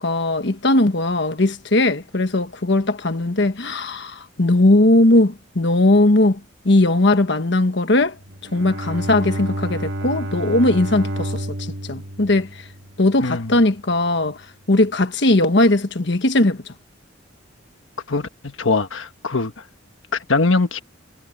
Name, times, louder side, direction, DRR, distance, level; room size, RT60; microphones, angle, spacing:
voice 1, 0.0-6.4 6.6-8.1 8.5-12.5 13.0-14.4 14.7-16.6, left 2 dB, 60° left, 1.3 m, -18 dB
Bowed string instrument, 8.2-13.4, right 1 dB, 70° right, 1.8 m, -30 dB
voice 2, 13.2-13.5 18.1-19.5 20.1-20.8, left 3 dB, 75° left, 1.3 m, -22 dB
head